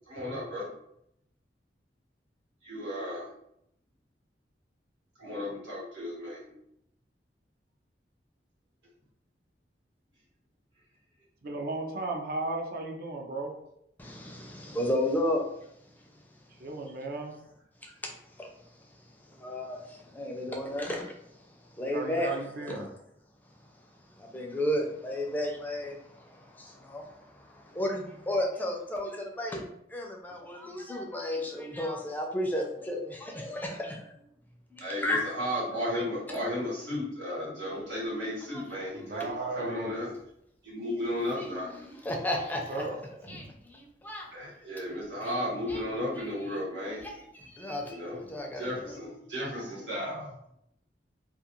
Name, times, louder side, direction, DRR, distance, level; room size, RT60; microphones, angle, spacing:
voice 1, 0.1-0.7 2.6-3.3 5.2-6.6 33.6-33.8 34.8-40.1 40.6-41.9 44.3-47.1 47.8-48.2 48.5-50.3, left 1 dB, 90° right, -6 dB, 1.2 m, -34 dB
voice 2, 11.4-13.5 16.6-17.3 20.5-20.6 21.9-22.9 39.0-39.9 42.7-43.0 43.3-43.5, right 2 dB, 55° right, 2 dB, 0.5 m, -35 dB
voice 3, 14.0-15.5 17.8-18.1 18.4-18.5 19.3-21.2 21.8-22.3 22.7-22.9 24.2-29.6 29.9-34.2 34.7-35.3 35.9-36.0 41.4-42.8 43.3-44.3 45.7-45.8 47.0-48.8, left 1 dB, 10° left, 1 dB, 0.4 m, -33 dB
2.4 x 2.3 x 2.9 m, 0.76 s
head